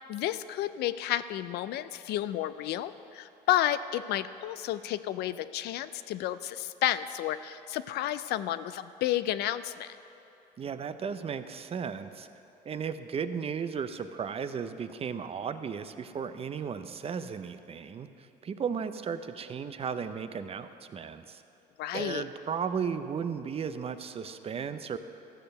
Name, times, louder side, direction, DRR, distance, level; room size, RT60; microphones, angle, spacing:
voice 1, 0.1-10.0 21.8-22.2, left 13 dB, 75° left, 13 dB, 0.4 m, -31 dB
voice 2, 10.6-12.3 12.6-18.1 18.4-21.4 21.9-25.0, right 6 dB, 35° right, 11 dB, 0.5 m, -35 dB
14.0 x 6.7 x 6.5 m, 2.7 s
cardioid pair, 110°, 17 cm